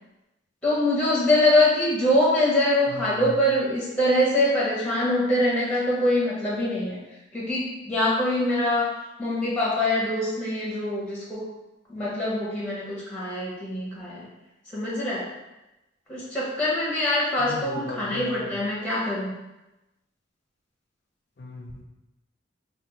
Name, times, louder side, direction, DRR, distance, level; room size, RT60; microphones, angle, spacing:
voice 1, 0.6-7.0 7.3-8.9 9.2-11.4 11.9-14.3 14.7-15.2 16.1-19.3, left 1 dB, 5° left, -7 dB, 0.6 m, -24 dB
voice 2, 2.9-3.4 17.4-18.6 21.4-21.8, left 1 dB, 50° left, 1 dB, 0.4 m, -37 dB
3.5 x 2.2 x 2.9 m, 0.99 s
head